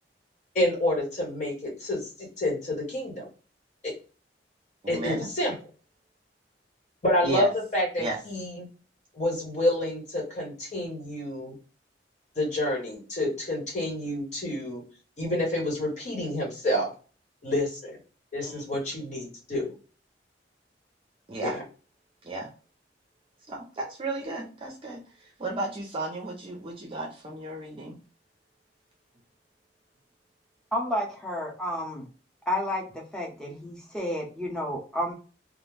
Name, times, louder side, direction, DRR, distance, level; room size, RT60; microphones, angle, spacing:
voice 1, 0.5-3.3 3.8-3.9 4.9-5.5 7.0-7.5 7.7-8.7 9.2-11.5 12.4-14.8 15.2-16.9 17.4-18.0 18.3-19.7 21.4-21.6, left 1 dB, 40° left, -1 dB, 1.1 m, -28 dB
voice 2, 4.8-5.3 7.2-7.5 8.0-8.2 18.4-18.8 21.3-21.6 22.2-22.5 23.5-27.9, right 2 dB, 30° right, 0 dB, 0.5 m, -34 dB
voice 3, 30.7-32.1 32.5-35.1, equal, 5° left, -2 dB, 0.7 m, -31 dB
2.4 x 2.1 x 3.1 m, 0.36 s
head